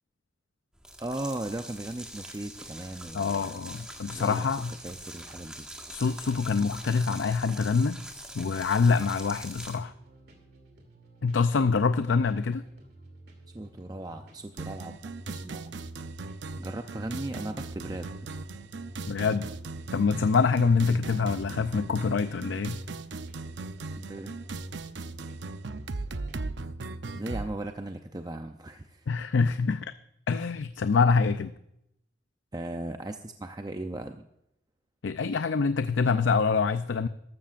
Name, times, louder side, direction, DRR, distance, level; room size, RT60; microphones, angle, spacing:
sound 1, 0.7-9.8, right 1 dB, 5° right, 1.6 m, -44 dB
voice 1, 1.0-3.6 4.1-4.5 4.8-5.7 13.5-15.0 15.3-15.8 16.6-18.3 24.0-24.4 27.1-29.1 32.5-34.3, right 1 dB, 20° right, 6 dB, 0.5 m, -37 dB
voice 2, 3.1-4.7 5.9-8.0 8.3-9.9 11.2-12.7 19.1-19.5 19.9-22.8 29.1-29.9 30.3-31.5 35.0-37.1, left 5 dB, 85° left, 11 dB, 0.5 m, -25 dB
sound 2, 9.3-26.5, right 1 dB, 60° right, 2.8 m, -55 dB
sound 3, 14.6-27.5, right 3 dB, 75° right, 0.7 m, -38 dB
14.0 x 13.0 x 2.5 m, 0.81 s
head